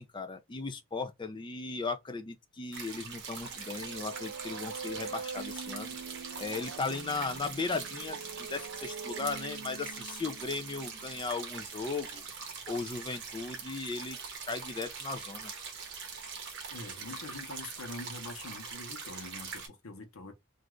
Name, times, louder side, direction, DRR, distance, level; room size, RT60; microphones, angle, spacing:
voice 1, 0.0-6.0 6.4-12.2 12.7-14.2 14.5-15.5, left 4 dB, 20° left, 0.4 m, -37 dB
sound 1, 2.7-19.7, right 5 dB, 55° right, 0.8 m, -43 dB
sound 2, 3.4-11.2, right 5 dB, 70° right, 0.4 m, -45 dB
voice 2, 16.7-20.3, left 2 dB, 80° left, 0.9 m, -44 dB
2.5 x 2.4 x 3.0 m
head